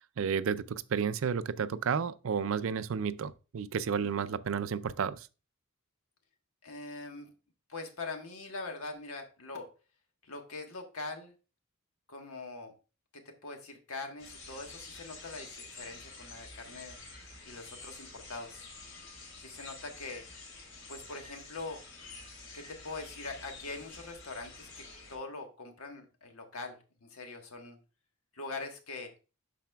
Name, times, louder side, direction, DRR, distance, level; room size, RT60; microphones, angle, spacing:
voice 1, 0.2-5.3, right 6 dB, 65° right, 0.4 m, -32 dB
voice 2, 6.6-7.3 7.7-9.7 10.2-11.3 12.1-12.7 13.1-17.0 17.4-18.7 19.4-20.2 20.9-21.8 22.5-27.8 28.3-29.1, left 3 dB, 80° left, 1.4 m, -43 dB
sound 1, 14.2-25.2, left 3 dB, 60° left, 4.0 m, -49 dB
11.5 x 4.2 x 2.3 m
head